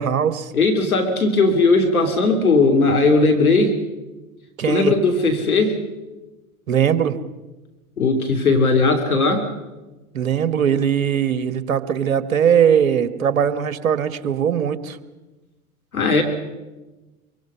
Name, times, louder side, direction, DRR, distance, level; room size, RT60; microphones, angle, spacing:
voice 1, 0.0-0.5 4.6-4.9 6.7-7.2 10.1-15.0, right 8 dB, 65° right, 13 dB, 1.5 m, -20 dB
voice 2, 0.5-3.8 4.6-5.8 8.0-9.4 15.9-16.2, left 3 dB, 75° left, 4 dB, 3.1 m, -17 dB
25.0 x 24.0 x 5.6 m, 1.1 s
figure-of-eight pair, 95°, 43 cm